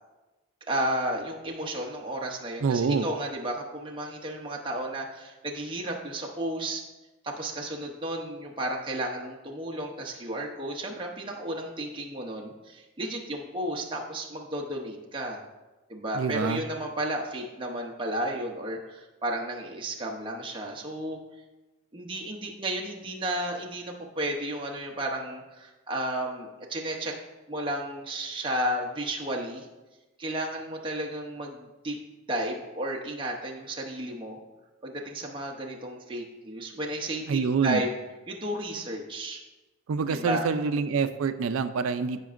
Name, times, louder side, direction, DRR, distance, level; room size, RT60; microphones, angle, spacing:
voice 1, 0.7-6.8 7.2-15.4 15.9-21.2 21.9-27.1 27.5-29.7 30.2-32.0 32.3-34.4 34.8-37.9 38.3-39.4 40.1-40.5, right 1 dB, 20° right, -1 dB, 0.8 m, -33 dB
voice 2, 2.6-3.1 16.1-16.6 37.3-37.8 39.9-42.2, right 5 dB, 70° right, 10 dB, 0.4 m, -26 dB
15.0 x 5.1 x 2.5 m, 1.1 s
head